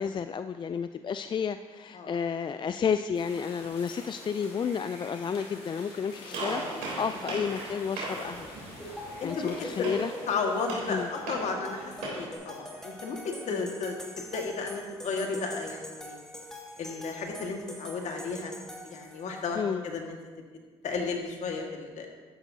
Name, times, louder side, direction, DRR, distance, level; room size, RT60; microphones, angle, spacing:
voice 1, 0.0-6.6 7.0-8.5 9.2-10.1 10.9-11.1 13.5-13.7 19.5-19.8, left 6 dB, 35° left, 10 dB, 0.4 m, -31 dB
sound 1, 3.1-10.4, left 2 dB, 90° left, 3.0 m, -47 dB
voice 2, 6.3-6.8 9.2-9.9 10.3-14.0 14.3-16.2 16.8-18.5 18.8-20.2 20.8-22.1, left 4 dB, 65° left, 2 dB, 1.8 m, -33 dB
Gunshot gunfire, 6.3-12.4, right 2 dB, 85° right, 3.3 m, -39 dB
sound 2, 8.8-19.4, equal, 5° left, 2.3 m, -43 dB
12.5 x 10.5 x 2.8 m, 1.5 s
supercardioid pair, 60°, 13 cm